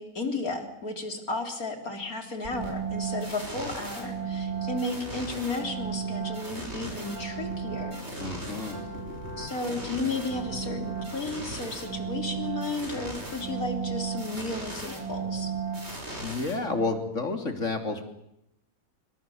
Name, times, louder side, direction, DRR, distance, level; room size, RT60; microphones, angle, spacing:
voice 1, 0.0-8.0 9.4-15.5, left 2 dB, 75° left, 5 dB, 4.0 m, -33 dB
sound 1, 2.4-17.1, right 4 dB, 45° right, 6.4 m, -35 dB
voice 2, 8.2-8.9 16.2-18.0, left 3 dB, 55° left, 6 dB, 3.5 m, -30 dB
27.5 x 25.0 x 7.2 m, 0.80 s
omnidirectional pair, 1.5 m